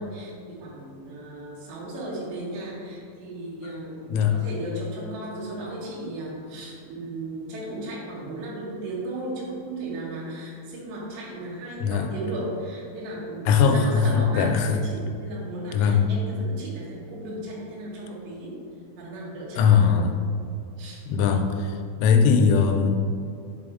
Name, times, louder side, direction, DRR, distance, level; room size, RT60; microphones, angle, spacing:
voice 1, 0.0-18.6 19.0-19.9 20.8-21.0, right 1 dB, 70° right, -5 dB, 3.2 m, -35 dB
voice 2, 4.1-4.4 11.8-12.1 13.5-14.8 15.7-16.1 19.6-20.2 21.1-23.0, left 6 dB, 90° left, 5 dB, 3.2 m, -20 dB
7.5 x 4.2 x 3.5 m, 2.4 s
omnidirectional pair, 5.7 m